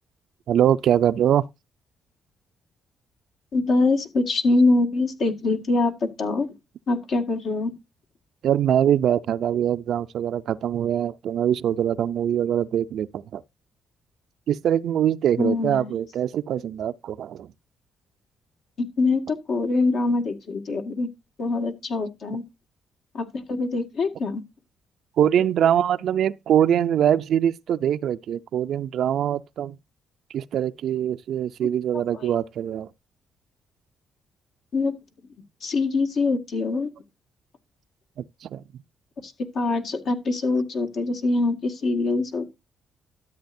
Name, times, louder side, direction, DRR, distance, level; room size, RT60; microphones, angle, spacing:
voice 1, 0.5-1.4 8.4-13.4 14.5-17.5 25.2-29.8 30.3-32.9 38.5-38.6, right 10 dB, 70° right, 0.4 m, -23 dB
voice 2, 3.5-6.6 6.9-7.7 15.4-16.0 18.8-21.1 21.4-22.4 23.1-24.4 31.6-31.7 31.9-32.3 34.7-34.9 35.6-36.9 39.2-42.6, left 3 dB, 65° left, 1.9 m, -24 dB
13.0 x 7.3 x 2.6 m
cardioid pair, 90°, 0 cm